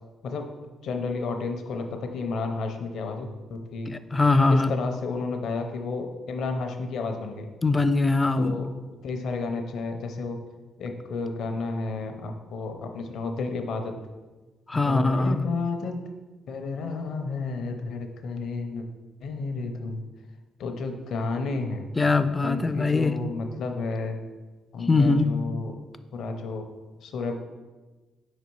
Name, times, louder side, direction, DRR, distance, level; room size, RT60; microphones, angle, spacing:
voice 1, 0.8-3.9 4.5-7.5 8.4-8.7 9.0-10.4 10.8-13.9 14.7-16.0 16.5-18.9 19.2-20.0 20.6-21.9 22.4-24.2 24.7-25.8 26.1-26.7 27.0-27.3, left 3 dB, 70° left, 5 dB, 0.6 m, -31 dB
voice 2, 3.9-4.7 7.6-8.6 14.7-15.5 22.0-23.1 24.9-25.3, left 3 dB, 20° left, 11 dB, 0.4 m, -22 dB
4.9 x 4.1 x 4.6 m, 1.2 s
cardioid pair, 90°, 0 cm